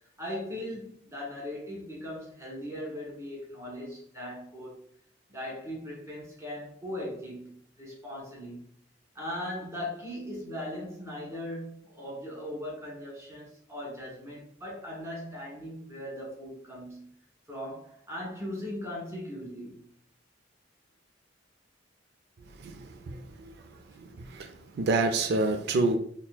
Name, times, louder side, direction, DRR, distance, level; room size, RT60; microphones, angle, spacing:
voice 1, 0.2-4.8 5.3-8.6 9.1-17.1 17.5-19.9 23.6-23.7, left 1 dB, 15° right, 1.6 m, -39 dB
voice 2, 22.6-23.6 24.0-26.0, right 3 dB, 60° right, 0.4 m, -28 dB
4.2 x 3.5 x 2.2 m
head